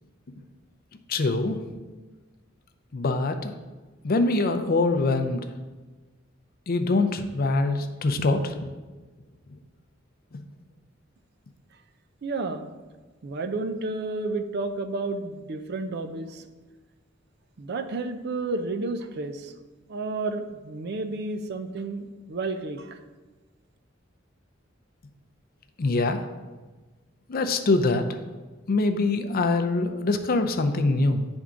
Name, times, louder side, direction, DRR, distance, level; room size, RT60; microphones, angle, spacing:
voice 1, 1.1-1.6 2.9-3.5 4.0-5.4 6.7-8.5 25.8-26.2 27.3-28.0 28.7-31.3, left 3 dB, 50° left, 7 dB, 0.5 m, -24 dB
voice 2, 12.2-12.7 13.2-16.5 17.6-19.5 19.9-23.0, right 3 dB, 55° right, 8 dB, 0.5 m, -31 dB
9.5 x 3.5 x 3.7 m, 1.3 s
head